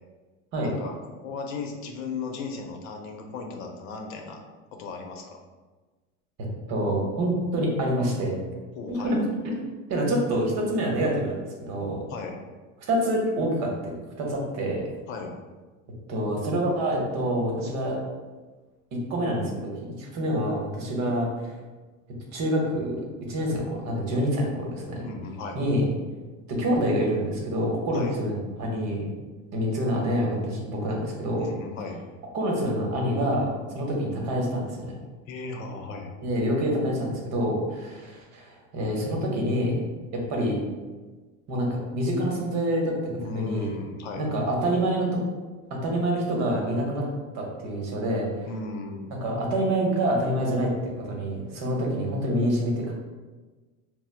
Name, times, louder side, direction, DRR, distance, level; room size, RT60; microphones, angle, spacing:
voice 1, 0.6-0.9 1.2-4.4 4.8-5.4 8.8-9.2 12.1-12.4 15.1-15.3 25.0-25.6 27.9-28.1 31.3-32.0 35.3-36.1 43.2-44.3 48.5-49.1, left 4 dB, 75° left, 3 dB, 0.7 m, -36 dB
voice 2, 6.7-8.4 8.9-9.2 9.9-11.4 11.7-12.0 12.9-13.7 14.2-14.8 16.1-18.0 18.9-19.7 20.0-21.5 22.3-25.1 25.5-25.8 26.5-29.1 29.5-31.5 32.3-34.9 36.2-39.8 40.1-40.6 41.5-43.0 43.3-43.7 44.2-45.2 45.7-47.1 47.3-48.5 49.2-52.9, equal, 45° right, -1 dB, 0.9 m, -26 dB
4.3 x 2.0 x 2.4 m, 1.3 s
supercardioid pair, 125°, 39 cm